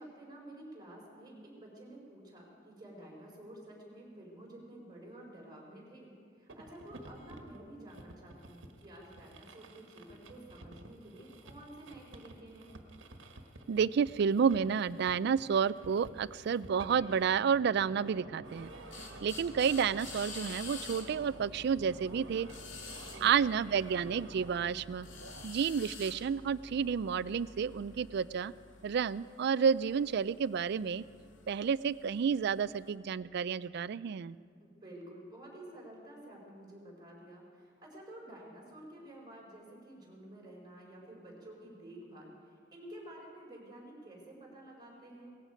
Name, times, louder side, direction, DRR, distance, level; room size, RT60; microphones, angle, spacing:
voice 1, 0.0-6.1 6.4-12.8 23.0-23.5 34.6-45.3, right 1 dB, 20° right, -2 dB, 4.3 m, -51 dB
sound 1, 6.5-25.5, right 2 dB, 85° right, 1.3 m, -51 dB
voice 2, 13.7-18.7 19.2-22.5 23.2-25.1 25.4-28.5 28.8-31.0 31.5-34.4, right 7 dB, 60° right, 18 dB, 0.3 m, -30 dB
sound 2, 18.4-32.9, left 3 dB, 85° left, 2.0 m, -50 dB
18.5 x 15.5 x 5.1 m, 2.1 s
head